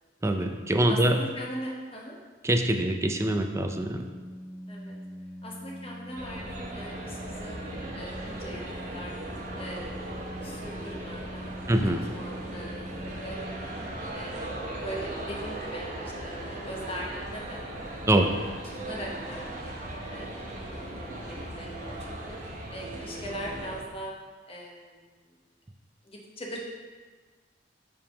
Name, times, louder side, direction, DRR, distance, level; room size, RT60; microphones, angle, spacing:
voice 1, 0.2-1.2 2.4-4.0 11.7-12.0 18.1-18.3, right 1 dB, 15° right, 5 dB, 0.4 m, -24 dB
voice 2, 0.9-2.1 4.7-5.0 5.4-9.2 9.5-11.8 12.1-13.7 14.1-17.6 18.1-18.5 18.8-22.0 22.2-22.4 22.7-24.1 24.5-25.3 26.0-26.6, right 1 dB, 30° left, -2 dB, 1.1 m, -41 dB
Organ, 3.4-14.2, equal, 80° left, 1.8 m, -44 dB
sound 1, 6.1-23.8, right 1 dB, 45° right, 1.2 m, -38 dB
4.8 x 3.6 x 5.6 m, 1.4 s
head